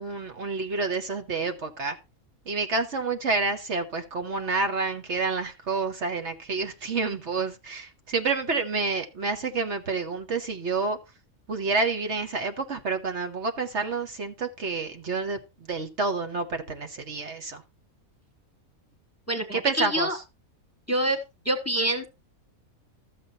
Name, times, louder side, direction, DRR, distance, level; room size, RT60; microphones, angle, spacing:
voice 1, 0.0-2.0 2.5-11.0 11.5-15.4 15.7-17.6 19.5-20.1, right 4 dB, 55° right, 1.4 m, -29 dB
voice 2, 19.3-20.2 20.9-21.2 21.4-22.1, right 1 dB, 10° left, 1.2 m, -26 dB
13.0 x 7.3 x 4.2 m
omnidirectional pair, 1.5 m